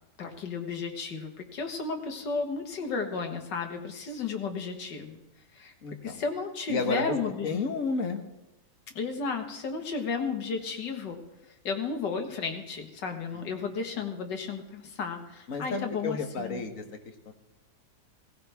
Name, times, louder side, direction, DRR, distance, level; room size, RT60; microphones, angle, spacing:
voice 1, 0.2-5.2 5.5-7.6 9.0-11.2 11.6-16.7, left 5 dB, 85° left, 4 dB, 2.1 m, -33 dB
voice 2, 5.8-6.1 6.7-8.2 15.5-16.8 17.3-17.4, left 3 dB, 55° left, 5 dB, 1.6 m, -31 dB
17.5 x 16.5 x 3.5 m, 0.93 s
omnidirectional pair, 1.8 m